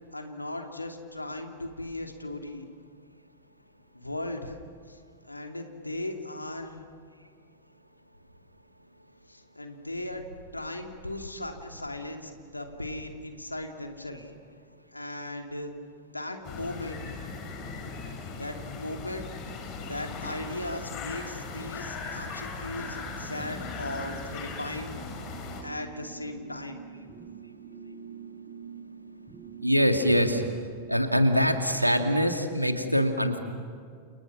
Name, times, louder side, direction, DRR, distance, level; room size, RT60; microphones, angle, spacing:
voice 1, 0.1-2.7 3.9-4.6 4.9-5.0 5.2-6.8 9.3-10.3 10.5-14.2 14.9-15.7 16.1-17.0 18.3-19.3 19.8-25.0 25.6-26.8, left 1 dB, 85° left, 4 dB, 2.7 m, -37 dB
sound 1, 16.4-25.6, left 4 dB, 40° left, 5.8 m, -38 dB
sound 2, 22.7-31.5, right 6 dB, 35° right, 5.9 m, -46 dB
voice 2, 29.6-30.4 30.9-33.4, equal, 90° right, 5 dB, 2.3 m, -23 dB
29.5 x 29.0 x 6.1 m, 2.2 s
figure-of-eight pair, 90°, 0 cm